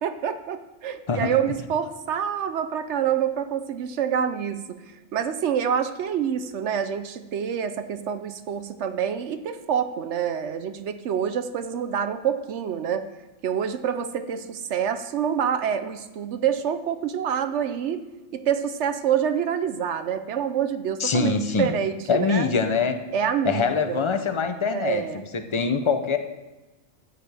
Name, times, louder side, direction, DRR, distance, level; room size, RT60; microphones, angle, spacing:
voice 1, 0.0-4.8 5.1-13.1 13.4-18.0 18.3-22.5 23.1-24.0 24.7-25.2, right 8 dB, 65° right, 10 dB, 0.9 m, -27 dB
voice 2, 1.1-1.4 21.0-21.7 22.1-23.0 23.4-26.2, left 5 dB, 45° left, 8 dB, 0.3 m, -24 dB
13.5 x 9.1 x 3.4 m, 1.1 s
omnidirectional pair, 1.4 m